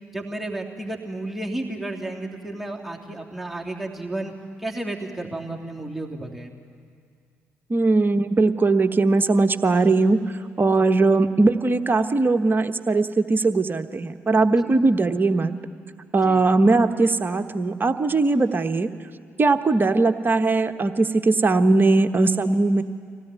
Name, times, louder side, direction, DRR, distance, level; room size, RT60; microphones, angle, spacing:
voice 1, 0.1-4.3 4.6-6.5 14.6-14.8 16.2-16.4, right 2 dB, ahead, -1 dB, 3.1 m, -32 dB
voice 2, 7.7-10.2 10.6-15.6 16.1-18.9 19.4-22.8, right 3 dB, 30° right, 8 dB, 1.2 m, -20 dB
25.0 x 17.5 x 9.3 m, 2.2 s
figure-of-eight pair, 40°, 7 cm